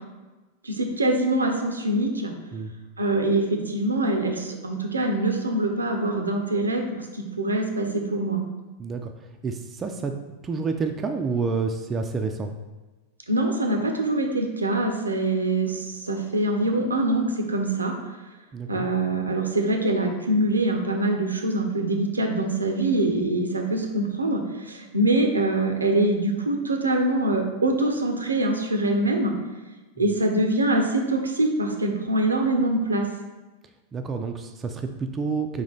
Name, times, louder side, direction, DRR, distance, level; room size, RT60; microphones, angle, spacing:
voice 1, 0.6-2.3 3.0-8.4 13.3-17.9 18.7-29.3 30.0-33.1, right 1 dB, 80° right, 3 dB, 0.5 m, -24 dB
voice 2, 8.8-9.1 9.4-10.1 10.4-12.5 18.5-18.9 33.9-35.6, right 4 dB, 20° right, 5 dB, 0.3 m, -29 dB
4.1 x 2.8 x 3.8 m, 1.2 s
figure-of-eight pair, 90°, 0 cm